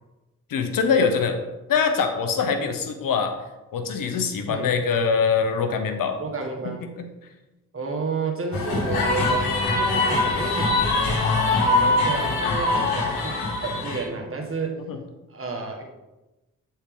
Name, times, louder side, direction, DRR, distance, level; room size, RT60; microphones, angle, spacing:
voice 1, 0.5-1.4 1.7-3.3 3.7-6.2 6.6-7.1 14.9-15.0, left 5 dB, 75° left, 7 dB, 0.9 m, -23 dB
voice 2, 6.2-6.8 7.7-10.9 11.6-14.8 15.3-15.8, right 4 dB, 40° right, 1 dB, 1.7 m, -31 dB
sound 1, 8.5-14.0, left 2 dB, 90° left, 1.3 m, -23 dB
8.1 x 4.3 x 3.8 m, 1.0 s
supercardioid pair, 45°, 34 cm